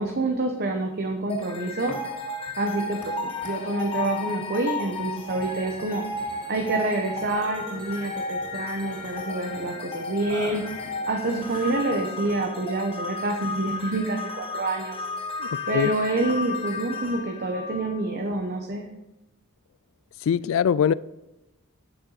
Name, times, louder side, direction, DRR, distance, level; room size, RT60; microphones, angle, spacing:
voice 1, 0.0-2.0 2.6-6.0 6.5-10.6 11.1-15.0 15.7-18.8, right 2 dB, 50° right, 0.9 m, -27 dB
sound 1, 1.3-18.4, left 3 dB, 25° left, 1.2 m, -34 dB
Burping eructation, 1.9-12.6, left 1 dB, 10° left, 3.8 m, -47 dB
voice 2, 20.3-20.9, left 8 dB, 65° left, 0.3 m, -21 dB
9.6 x 7.8 x 4.0 m
head